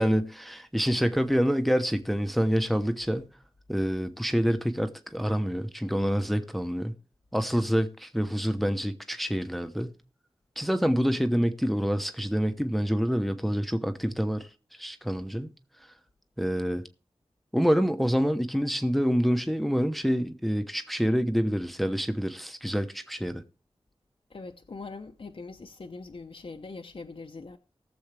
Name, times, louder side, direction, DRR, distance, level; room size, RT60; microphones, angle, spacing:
voice 1, 0.0-3.3 3.7-6.9 7.3-9.9 10.6-14.5 14.8-15.5 16.4-16.8 17.5-23.4, equal, ahead, 0.9 m, -27 dB
voice 2, 24.3-27.6, left 3 dB, 60° left, 0.8 m, -42 dB
19.5 x 7.0 x 3.3 m
wide cardioid pair, 75°, 11 cm